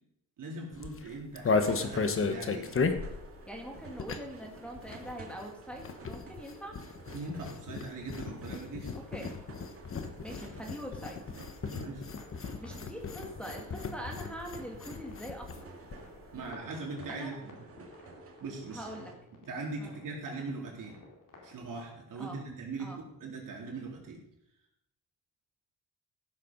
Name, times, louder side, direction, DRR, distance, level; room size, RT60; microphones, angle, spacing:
voice 1, 0.4-2.7 7.1-8.9 11.7-12.0 16.3-17.6 18.4-18.9 19.3-21.0 21.4-23.0 23.2-24.2, right 3 dB, 65° right, -1 dB, 3.8 m, -40 dB
sound 1, 0.7-4.5 4.7-15.6 15.9-16.5, left 4 dB, 40° left, 1.2 m, -35 dB
sound 2, 1.4-19.1, right 3 dB, 40° right, 2.2 m, -51 dB
voice 2, 3.5-6.8 8.9-9.3 10.2-11.2 12.6-15.7 17.1-17.4 18.7-19.1 19.8-19.9 22.2-22.4 22.8-23.0, equal, 5° left, -1 dB, 2.2 m, -43 dB
sound 3, 11.9-21.8, left 3 dB, 65° left, 3.9 m, -56 dB
15.5 x 7.5 x 5.4 m, 0.83 s
cardioid pair, 115°, 34 cm